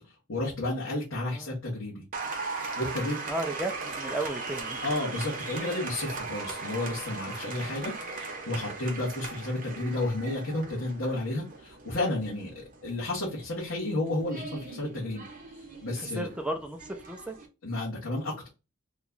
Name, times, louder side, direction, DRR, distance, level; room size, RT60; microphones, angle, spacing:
voice 1, 0.0-2.0 2.8-3.2 4.8-15.2 15.8-16.3 17.6-18.5, left 2 dB, 65° left, -7 dB, 1.2 m, -32 dB
voice 2, 1.2-1.6 3.3-4.8 16.0-17.3, right 1 dB, 5° right, 4 dB, 0.3 m, -34 dB
Applause, 2.1-17.5, right 3 dB, 40° right, 0.7 m, -39 dB
3.0 x 2.3 x 3.7 m, 0.29 s
head